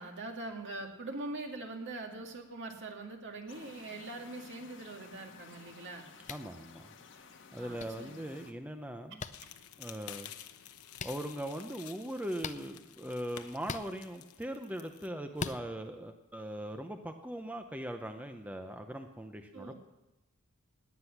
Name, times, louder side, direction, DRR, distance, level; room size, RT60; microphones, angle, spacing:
voice 1, 0.0-6.1 7.6-8.3 19.5-19.7, right 2 dB, 55° right, 3 dB, 2.0 m, -43 dB
sound 1, 3.5-8.5, left 5 dB, 60° left, 1.3 m, -54 dB
Wooden staff hitting hand, 6.2-6.5 7.8-7.9 9.2-9.3 10.9-11.1 12.4-12.6 13.6-13.9 15.3-15.6, left 5 dB, 35° left, 0.5 m, -38 dB
voice 2, 6.3-7.3 7.5-9.2 9.8-10.3 11.0-19.7, right 1 dB, 5° right, 6 dB, 0.7 m, -40 dB
sound 2, 9.3-15.1, left 10 dB, 75° left, 0.9 m, -51 dB
17.5 x 9.9 x 5.9 m, 0.97 s
head